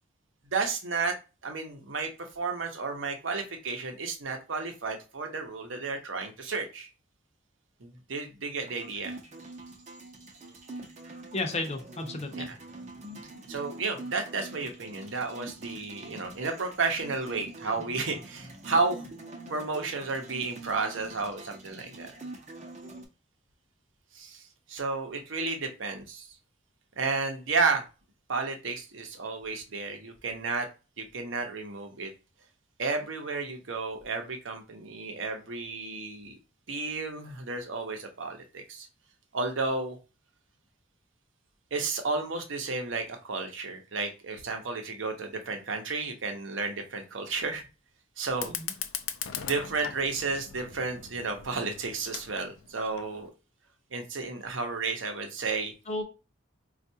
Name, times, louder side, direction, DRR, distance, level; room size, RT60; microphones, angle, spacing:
voice 1, 0.5-1.2 1.4-6.9 7.8-9.1 12.3-12.6 13.5-19.1 19.5-22.1 24.1-26.4 27.0-27.8 28.3-30.7 31.0-32.1 32.8-36.4 36.7-38.9 39.3-40.0 41.7-47.6 48.2-48.5 49.4-53.3 53.9-55.7, right 4 dB, 70° right, 4 dB, 0.8 m, -32 dB
sound 1, 8.6-23.1, right 2 dB, 35° right, 0.6 m, -45 dB
voice 2, 11.3-12.5 48.4-48.7 55.9-56.0, left 2 dB, 35° left, 4 dB, 0.6 m, -33 dB
Fire, 48.3-53.3, left 9 dB, 80° left, 0.4 m, -40 dB
4.4 x 2.3 x 2.7 m, 0.31 s
head